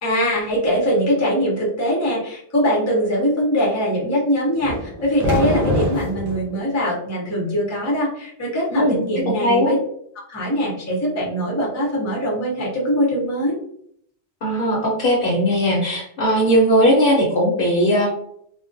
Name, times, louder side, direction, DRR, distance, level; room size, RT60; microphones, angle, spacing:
voice 1, 0.0-9.8 10.3-13.6, equal, 20° left, -4 dB, 0.5 m, -22 dB
sound 1, 4.6-6.5, left 1 dB, 55° right, 0.7 m, -24 dB
voice 2, 9.3-9.7 14.4-18.1, equal, 55° left, -3 dB, 0.8 m, -18 dB
2.3 x 2.1 x 2.5 m, 0.68 s
omnidirectional pair, 1.2 m